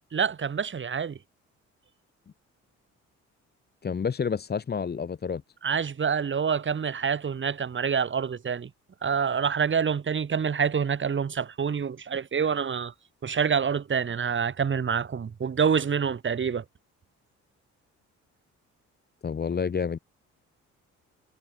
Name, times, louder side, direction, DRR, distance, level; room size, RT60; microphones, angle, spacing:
voice 1, 0.1-1.1 5.6-8.7 9.0-12.9 13.2-16.6, right 6 dB, 40° right, 4.0 m, -27 dB
voice 2, 3.8-5.4 19.2-20.0, left 6 dB, 35° left, 1.3 m, -29 dB
cardioid pair, 95°, 29 cm